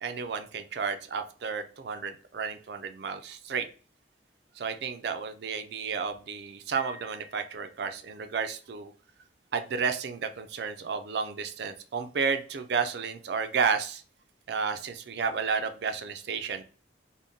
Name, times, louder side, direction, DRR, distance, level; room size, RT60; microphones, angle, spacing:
voice 1, 0.0-3.7 4.6-8.9 9.5-14.0 14.5-16.6, right 5 dB, 60° right, 8 dB, 0.4 m, -32 dB
Piano, 6.8-8.2, left 4 dB, 75° left, 0.7 m, -49 dB
3.5 x 2.1 x 2.6 m, 0.38 s
head